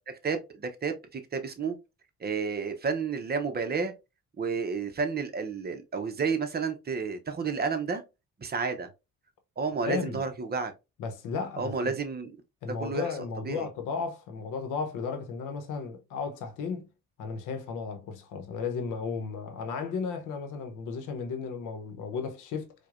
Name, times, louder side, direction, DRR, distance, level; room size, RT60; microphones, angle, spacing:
voice 1, 0.0-1.8 2.2-3.9 4.4-8.0 8.4-8.9 9.6-10.7 11.6-12.3 12.7-13.1 13.5-13.7, right 5 dB, 30° right, 0.7 m, -31 dB
voice 2, 9.8-10.2 11.0-11.9 12.6-16.9 17.2-22.7, left 5 dB, 90° left, 0.8 m, -34 dB
4.6 x 2.2 x 2.4 m
cardioid pair, 90°, 30 cm